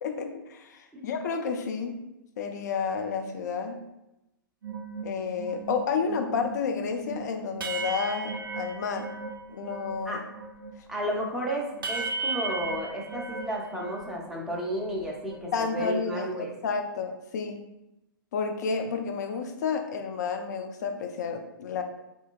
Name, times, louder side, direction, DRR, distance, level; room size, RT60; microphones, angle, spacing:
voice 1, 0.0-2.0 2.4-3.8 5.0-9.1 9.5-10.2 15.5-17.6 18.3-21.8, left 5 dB, 50° left, 5 dB, 0.5 m, -31 dB
sound 1, 4.6-10.1 10.3-14.2 14.5-15.7, right 4 dB, 70° right, 0.4 m, -37 dB
voice 2, 10.9-16.5, equal, 5° right, -3 dB, 0.6 m, -32 dB
3.6 x 2.7 x 2.3 m, 0.92 s
figure-of-eight pair, 110°, 12 cm